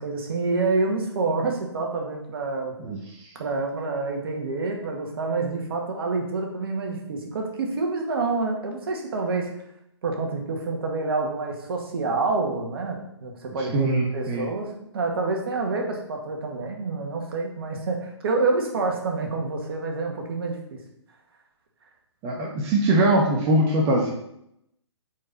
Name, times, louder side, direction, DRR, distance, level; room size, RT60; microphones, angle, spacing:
voice 1, 0.0-2.7 3.4-9.5 10.0-20.8, right 3 dB, 55° right, 2 dB, 1.9 m, -27 dB
voice 2, 2.8-3.3 13.7-14.5 22.2-24.1, right 1 dB, 25° right, -1 dB, 1.1 m, -22 dB
8.5 x 4.6 x 4.1 m, 0.77 s
figure-of-eight pair, 130°, 15 cm